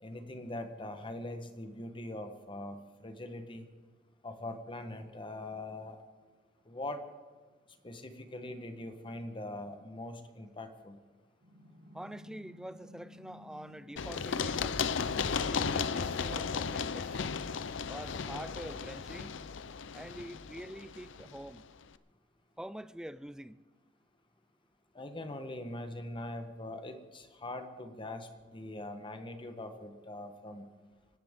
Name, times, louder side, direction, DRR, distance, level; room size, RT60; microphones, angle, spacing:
voice 1, 0.0-3.7 4.2-6.0 6.7-7.0 7.8-11.0 24.9-30.7, left 1 dB, 25° left, 1.1 m, -42 dB
sound 1, 11.4-17.1, left 1 dB, 60° right, 2.6 m, -56 dB
voice 2, 11.9-14.9 15.4-17.4 17.9-19.4 19.9-21.7 22.6-23.6, right 1 dB, 5° right, 0.4 m, -45 dB
Run, 14.0-21.6, left 6 dB, 70° left, 0.6 m, -35 dB
25.5 x 13.0 x 3.6 m
head